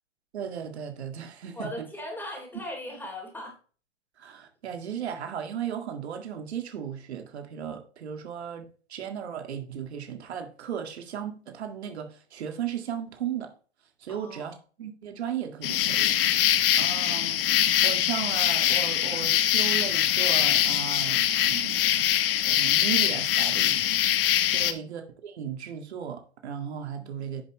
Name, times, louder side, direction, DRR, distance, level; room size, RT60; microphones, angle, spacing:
voice 1, 0.3-1.9 4.2-8.6 8.9-13.5 14.0-16.1 16.8-17.4 17.8-22.1 22.5-23.8 24.4-27.4, right 8 dB, 70° right, 1.9 m, -35 dB
voice 2, 1.5-3.5 14.1-14.5 24.5-24.9 26.9-27.2, left 1 dB, 5° left, 3.1 m, -39 dB
sound 1, 15.6-24.7, left 11 dB, 55° left, 1.1 m, -23 dB
10.0 x 7.1 x 3.2 m
hypercardioid pair, 135°, 34 cm